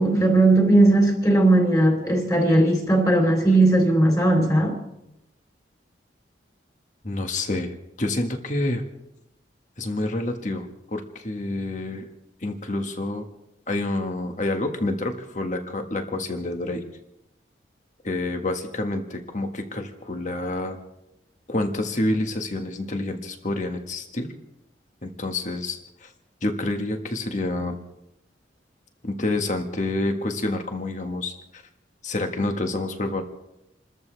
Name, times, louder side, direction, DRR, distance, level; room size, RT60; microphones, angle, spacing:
voice 1, 0.0-4.8, right 2 dB, 20° left, 3.5 m, -18 dB
voice 2, 7.0-8.8 9.8-12.1 12.4-13.3 13.7-16.8 18.0-20.8 21.5-24.3 25.0-26.1 26.4-27.8 29.0-31.6 32.0-33.2, left 2 dB, 40° left, 1.6 m, -28 dB
29.0 x 13.5 x 3.4 m
head